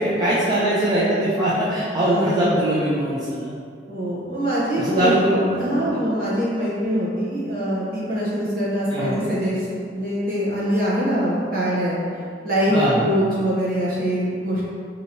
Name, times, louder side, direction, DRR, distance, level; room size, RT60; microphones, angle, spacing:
voice 1, 0.0-3.5 4.8-6.0 8.9-9.2 12.7-13.0, right 1 dB, 25° right, -9 dB, 0.4 m, -21 dB
voice 2, 1.9-2.5 3.9-5.2 5.6-12.0 12.4-14.6, equal, 55° right, -8 dB, 0.9 m, -23 dB
2.9 x 2.7 x 2.7 m, 2.3 s
head